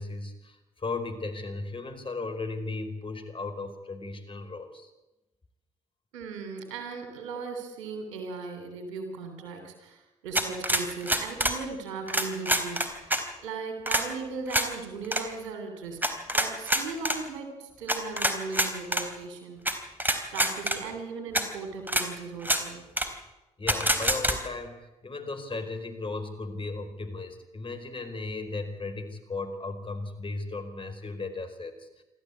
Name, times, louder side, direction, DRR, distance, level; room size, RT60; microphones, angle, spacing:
voice 1, 0.0-4.9 23.6-32.0, left 3 dB, 35° left, 6 dB, 4.4 m, -36 dB
voice 2, 6.1-13.2 13.4-19.8 20.3-22.8, right 4 dB, 80° right, 6 dB, 3.4 m, -38 dB
sound 1, 10.3-11.6 12.1-13.2 13.9-14.0 14.5-14.7 15.0-15.2 16.0-17.2 17.9-19.0 19.7-19.8 20.0-20.8 21.3-21.4 21.9-22.1 22.4-22.6 23.0-23.1 23.7-24.4, right 1 dB, 10° right, 3.8 m, -26 dB
26.5 x 13.5 x 8.5 m, 1.0 s
hypercardioid pair, 40°, 16 cm